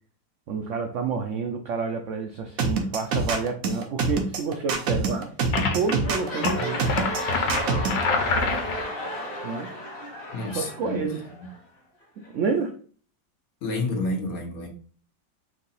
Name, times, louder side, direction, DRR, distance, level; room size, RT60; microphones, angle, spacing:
voice 1, 0.5-5.3 5.7-6.8 9.4-9.7 10.5-11.2 12.2-12.7, right 5 dB, 80° right, 5 dB, 0.6 m, -29 dB
sound 1, 2.6-8.0, right 4 dB, 65° right, 1.1 m, -25 dB
sound 2, 5.2-5.5 5.7-11.6 12.2-12.3, left 1 dB, 35° left, 1.2 m, -34 dB
sound 3, 5.5-5.9 6.4-8.9, left 4 dB, 80° left, 1.5 m, -26 dB
voice 2, 10.3-11.0 13.6-14.7, left 2 dB, 60° left, 2 dB, 1.3 m, -29 dB
4.7 x 2.7 x 3.9 m, 0.43 s
omnidirectional pair, 1.9 m